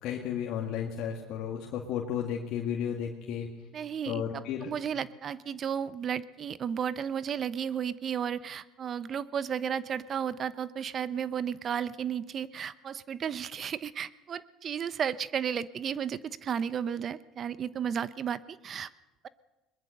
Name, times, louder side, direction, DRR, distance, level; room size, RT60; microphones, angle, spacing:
voice 1, 0.0-3.5 4.1-4.7, left 8 dB, 65° left, 0 dB, 2.1 m, -33 dB
voice 2, 3.7-18.9, right 8 dB, 45° right, 17 dB, 0.9 m, -33 dB
22.0 x 20.5 x 6.7 m, 1.1 s
hypercardioid pair, 80°, 0 cm